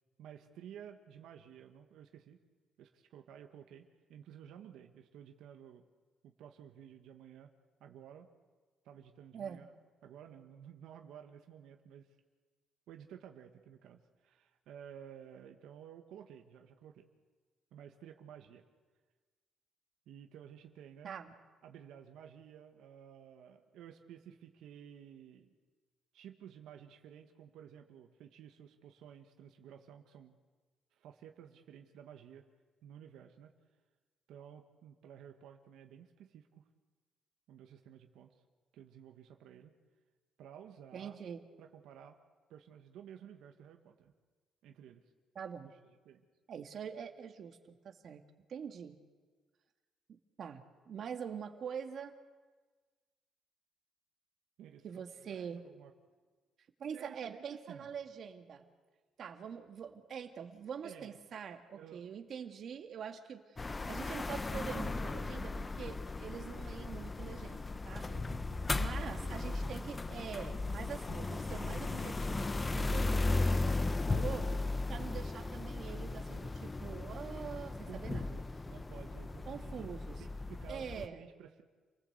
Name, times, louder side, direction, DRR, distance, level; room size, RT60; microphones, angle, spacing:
voice 1, 0.2-2.4 2.8-5.9 6.2-7.5 7.8-8.3 8.9-9.7 10.0-12.2 12.9-17.1 17.7-18.6 20.1-21.2 21.6-25.5 26.1-30.3 30.9-32.5 32.8-33.5 34.3-36.6 37.5-38.3 38.7-39.7 40.4-41.2 41.6-42.2 42.5-44.1 44.6-45.0 45.6-46.2 54.6-55.9 56.9-57.9 60.8-61.2 61.8-62.1 67.9-69.5 71.4-71.8 77.9-79.9 80.2-81.6, right 9 dB, 90° right, 5 dB, 1.8 m, -53 dB
voice 2, 40.9-41.4 45.4-45.7 46.5-48.2 48.5-49.0 50.1-52.1 54.8-55.6 56.8-58.7 59.2-63.6 63.9-68.1 68.7-74.5 74.9-78.3 79.5-80.2 80.7-81.3, right 7 dB, 55° right, 6 dB, 2.1 m, -44 dB
sound 1, 63.6-81.1, left 2 dB, 20° left, 0.8 m, -36 dB
29.0 x 19.0 x 8.1 m, 1.4 s
cardioid pair, 115°, 0 cm